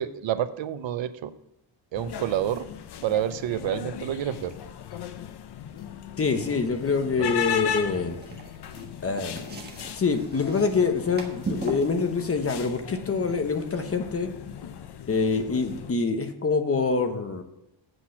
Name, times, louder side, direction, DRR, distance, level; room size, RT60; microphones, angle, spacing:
voice 1, 0.0-1.3 1.9-2.7 3.0-4.5 7.1-7.3, right 11 dB, 75° right, 12 dB, 0.7 m, -28 dB
sound 1, 1.9-15.9, left 8 dB, 60° left, 0.7 m, -37 dB
voice 2, 6.2-8.2 9.0-9.6 10.0-14.3 15.1-17.4, left 4 dB, 30° left, 7 dB, 0.9 m, -25 dB
sound 2, 8.2-14.3, right 3 dB, 20° right, 1.3 m, -39 dB
8.0 x 6.1 x 5.7 m, 0.87 s
wide cardioid pair, 165°, 46 cm